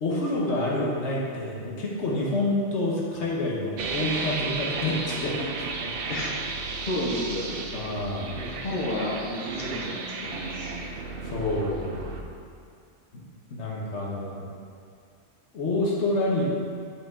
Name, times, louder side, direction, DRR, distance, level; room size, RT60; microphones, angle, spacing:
voice 1, 0.0-5.9 7.7-8.4 11.2-12.0 13.5-14.4 15.5-16.4, left 2 dB, 65° left, -5 dB, 1.3 m, -28 dB
sound 1, 3.8-12.2, right 4 dB, 60° right, 0.7 m, -33 dB
voice 2, 6.9-7.7 8.4-10.9, left 1 dB, 40° left, -4 dB, 1.1 m, -31 dB
8.0 x 5.0 x 3.6 m, 2.3 s
omnidirectional pair, 1.3 m